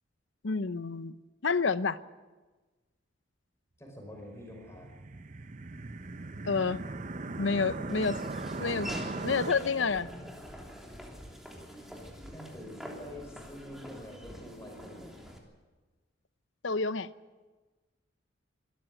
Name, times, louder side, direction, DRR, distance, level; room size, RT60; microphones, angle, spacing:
voice 1, 0.4-1.1 1.4-2.0 6.4-6.8 7.4-8.2 8.6-8.9 9.2-10.1 16.6-17.1, left 4 dB, 75° left, 15 dB, 0.8 m, -29 dB
voice 2, 3.8-4.9 12.3-15.1, left 1 dB, 15° left, 2 dB, 5.1 m, -46 dB
sound 1, 4.3-9.5, right 2 dB, 40° right, 0.8 m, -39 dB
Laughter / Walk footsteps, 7.9-15.4, equal, ahead, 3.1 m, -44 dB
25.0 x 13.5 x 9.1 m, 1.3 s
head